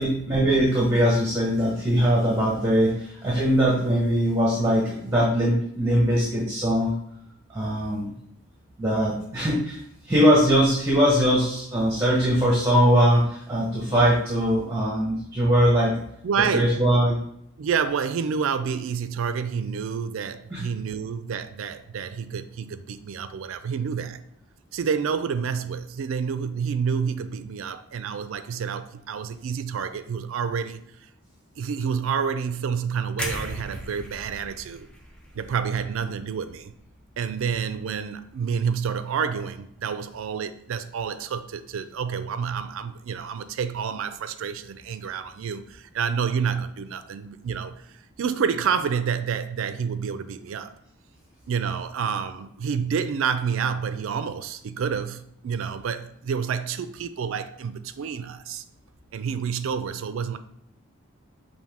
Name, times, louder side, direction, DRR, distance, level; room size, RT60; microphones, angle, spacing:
voice 1, 0.0-6.9 7.5-8.1 8.8-9.8 10.0-15.9 16.5-17.2 20.5-20.6, equal, 10° right, 0.9 m, -21 dB
voice 2, 16.2-16.8 17.6-24.2 24.7-31.1 31.6-34.9 35.3-36.7 37.2-50.7 51.5-58.6 59.1-60.4, right 6 dB, 75° right, 0.3 m, -29 dB
sound 1, 33.2-37.2 37.6-37.8, equal, 5° left, 0.4 m, -38 dB
5.5 x 2.7 x 3.5 m
head